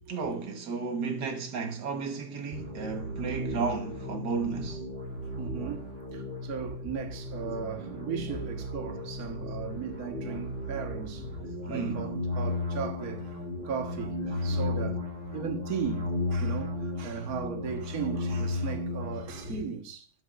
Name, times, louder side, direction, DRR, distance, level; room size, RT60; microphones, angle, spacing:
voice 1, 0.1-4.9 11.6-12.2, right 5 dB, 85° right, 2.0 m, -33 dB
background loop, 2.5-19.6, left 2 dB, 45° right, 2.5 m, -35 dB
voice 2, 5.2-15.0 15.3-20.1, right 7 dB, 65° right, 1.7 m, -37 dB
13.0 x 9.0 x 2.4 m
omnidirectional pair, 1.7 m